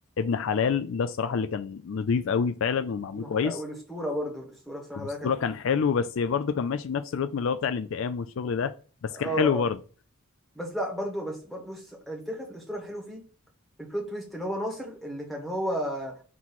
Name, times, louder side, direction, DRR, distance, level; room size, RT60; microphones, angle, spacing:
voice 1, 0.2-3.6 4.9-8.7 9.0-9.8, left 6 dB, 60° left, 11 dB, 0.4 m, -27 dB
voice 2, 3.1-5.3 9.2-9.6 10.5-13.2 13.8-16.1, equal, ahead, 0 dB, 1.4 m, -33 dB
6.0 x 3.0 x 5.5 m, 0.39 s
head